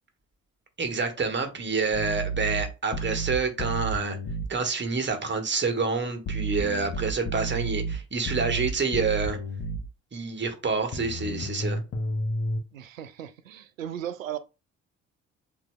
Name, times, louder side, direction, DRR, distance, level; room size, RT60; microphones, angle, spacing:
voice 1, 0.8-4.2 4.5-9.4 10.1-11.8, right 4 dB, 30° right, 1.3 m, -28 dB
sound 1, 1.9-4.5 6.3-9.9 10.9-12.6, right 2 dB, 35° left, 0.8 m, -31 dB
voice 2, 12.7-14.4, right 10 dB, 80° right, 0.5 m, -36 dB
7.3 x 2.6 x 2.2 m
figure-of-eight pair, 40°, 39 cm